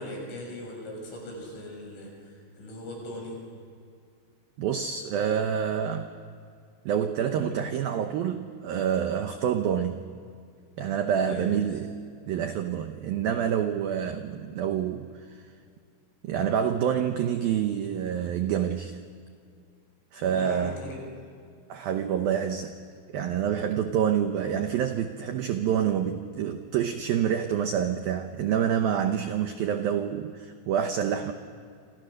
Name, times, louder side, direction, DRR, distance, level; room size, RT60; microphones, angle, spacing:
voice 1, 0.0-3.4 11.2-11.6 20.2-21.0, left 1 dB, 70° left, 0 dB, 9.5 m, -39 dB
voice 2, 4.6-6.1 6.9-10.1 10.8-11.9 12.3-15.5 16.2-19.0 20.1-20.7 21.7-22.8 23.1-31.3, right 8 dB, 90° right, 7 dB, 2.1 m, -27 dB
28.5 x 26.5 x 6.6 m, 2.2 s
omnidirectional pair, 5.7 m